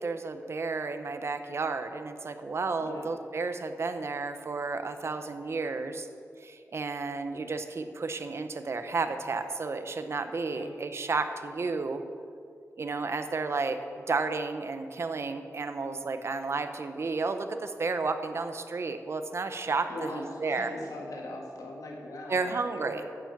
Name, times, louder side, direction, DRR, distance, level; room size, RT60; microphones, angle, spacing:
voice 1, 0.0-6.1 6.4-12.0 12.8-20.7 22.3-23.0, right 4 dB, 50° right, 8 dB, 0.8 m, -32 dB
voice 2, 19.9-23.2, left 1 dB, 85° left, -1 dB, 2.5 m, -41 dB
11.5 x 7.4 x 7.4 m, 2.3 s
wide cardioid pair, 115°, 6 cm